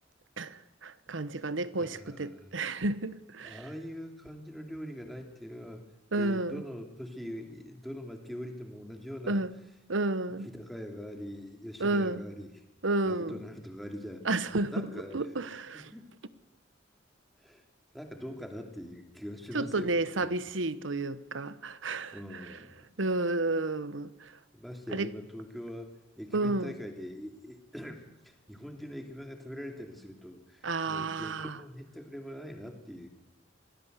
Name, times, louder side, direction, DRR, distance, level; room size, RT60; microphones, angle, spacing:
voice 1, 0.4-3.6 6.1-6.6 9.3-9.5 9.9-10.5 11.8-12.2 12.8-13.4 14.2-14.9 15.1-15.9 19.5-22.5 23.0-24.3 24.9-25.1 26.3-26.7 30.6-31.6, right 2 dB, 85° right, 1.1 m, -31 dB
voice 2, 1.8-2.6 3.4-5.8 6.1-9.4 10.4-12.5 13.0-14.3 14.7-15.2 15.7-16.1 17.4-17.6 17.9-20.4 22.1-22.9 24.5-33.1, equal, ahead, 2.9 m, -43 dB
26.0 x 18.0 x 8.2 m
head